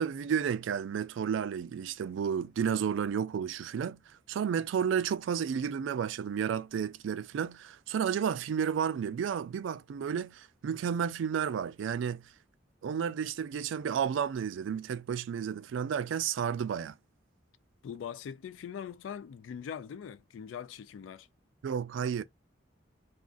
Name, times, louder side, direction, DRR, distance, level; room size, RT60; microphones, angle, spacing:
voice 1, 0.0-4.0 4.3-12.2 12.8-16.9 21.6-22.2, right 7 dB, 80° right, 0.3 m, -32 dB
voice 2, 17.8-21.3, left 8 dB, 90° left, 0.3 m, -42 dB
2.4 x 2.4 x 3.7 m
head